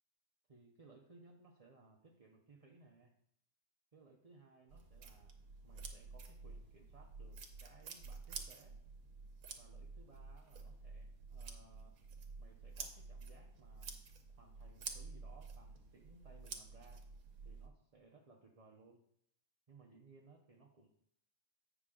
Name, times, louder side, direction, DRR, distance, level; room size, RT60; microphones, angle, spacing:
voice 1, 0.5-3.1 3.9-5.4 5.6-8.8 9.6-12.0 12.4-17.0 17.4-19.1 19.7-20.9, right 3 dB, 40° right, -1 dB, 0.5 m, -63 dB
sound 1, 4.7-17.7, right 4 dB, 75° right, 1.3 m, -50 dB
8.2 x 5.9 x 3.7 m, 0.71 s
omnidirectional pair, 1.5 m